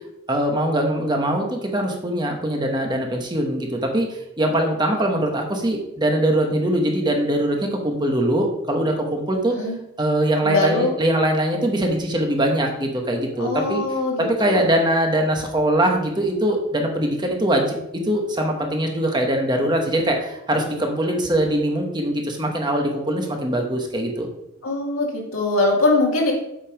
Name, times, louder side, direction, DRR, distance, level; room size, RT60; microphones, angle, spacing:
voice 1, 0.3-9.5 10.0-13.8 14.2-17.8 18.0-24.3, right 1 dB, 20° right, 2 dB, 1.1 m, -22 dB
voice 2, 10.4-10.9 13.4-14.7 24.6-26.3, left 2 dB, 85° left, -1 dB, 2.1 m, -22 dB
7.4 x 5.4 x 5.0 m, 0.84 s
head